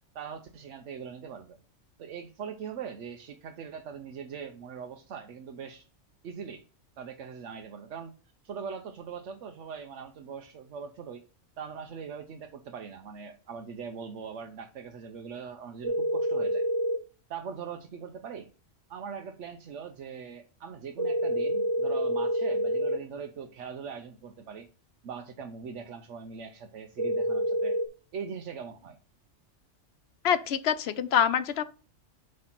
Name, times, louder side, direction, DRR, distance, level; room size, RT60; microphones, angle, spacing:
voice 1, 0.1-1.6 2.0-5.9 6.2-6.6 7.0-8.1 8.4-11.2 11.6-16.6 17.3-18.5 18.9-24.7 25.0-27.8 28.1-29.0, right 6 dB, 75° right, 1.0 m, -41 dB
sound 1, 15.8-17.0 21.0-23.0 27.0-27.9, equal, 30° right, 0.8 m, -27 dB
voice 2, 30.2-31.6, left 9 dB, 65° left, 0.9 m, -25 dB
7.6 x 3.3 x 5.8 m
omnidirectional pair, 1.2 m